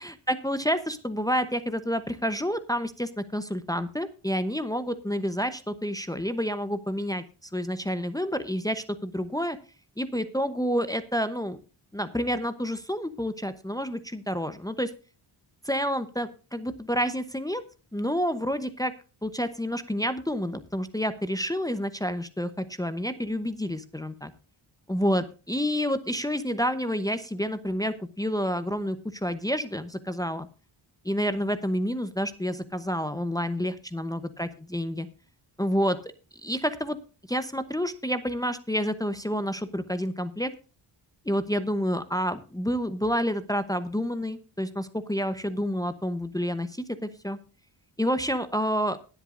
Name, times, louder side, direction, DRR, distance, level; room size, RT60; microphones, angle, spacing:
voice 1, 0.0-7.2 7.5-9.6 10.0-11.6 11.9-14.9 15.6-17.6 17.9-18.9 19.2-24.3 24.9-30.5 31.0-35.1 35.6-36.0 36.4-37.0 37.3-40.5 41.3-47.4 48.0-49.0, equal, 5° left, 10 dB, 0.9 m, -29 dB
20.5 x 8.2 x 2.6 m, 0.34 s
cardioid pair, 90°, 50 cm